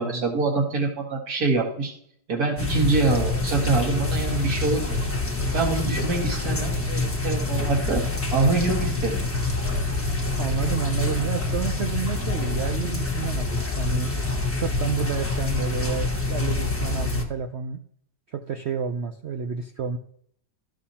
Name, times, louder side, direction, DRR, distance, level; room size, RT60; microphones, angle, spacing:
voice 1, 0.0-1.9 2.3-5.0 5.5-8.0 8.3-9.2, right 3 dB, 60° right, 0 dB, 2.2 m, -25 dB
sound 1, 2.6-17.2, left 3 dB, 10° left, 1.0 m, -26 dB
voice 2, 10.4-14.1 14.6-17.8 18.3-20.0, right 7 dB, 75° right, 6 dB, 0.6 m, -30 dB
13.5 x 6.2 x 2.8 m, 0.64 s
omnidirectional pair, 1.9 m